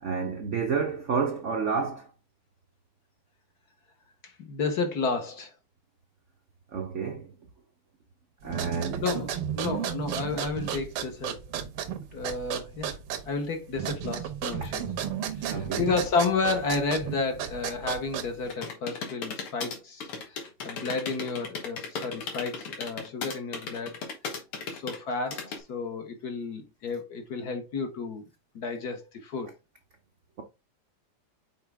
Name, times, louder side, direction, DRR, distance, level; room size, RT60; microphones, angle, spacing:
voice 1, 0.0-2.1 6.7-7.3 8.4-9.0 15.5-15.9, right 5 dB, 65° right, 0.7 m, -29 dB
voice 2, 4.2-5.5 8.4-11.5 12.1-13.0 13.3-14.9 15.4-24.0 24.7-28.3 28.5-29.5, left 4 dB, 55° left, 1.3 m, -32 dB
sound 1, 8.4-18.5, right 9 dB, 85° right, 1.8 m, -34 dB
sound 2, 18.4-25.6, left 5 dB, 85° left, 2.3 m, -36 dB
5.9 x 4.5 x 3.5 m
omnidirectional pair, 2.4 m